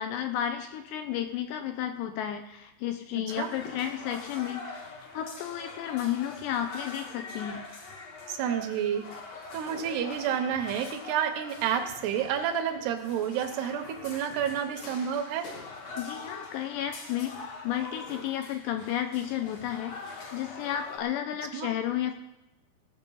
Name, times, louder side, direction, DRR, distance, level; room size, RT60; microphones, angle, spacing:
voice 1, 0.0-4.9 5.1-7.6 16.0-22.2, left 10 dB, 80° left, 7 dB, 2.7 m, -32 dB
sound 1, 3.3-21.0, left 3 dB, 55° left, 1.8 m, -43 dB
voice 2, 8.3-9.1 9.5-15.5 21.5-21.7, right 9 dB, 80° right, 7 dB, 2.5 m, -30 dB
18.5 x 6.9 x 5.5 m, 0.94 s
omnidirectional pair, 5.5 m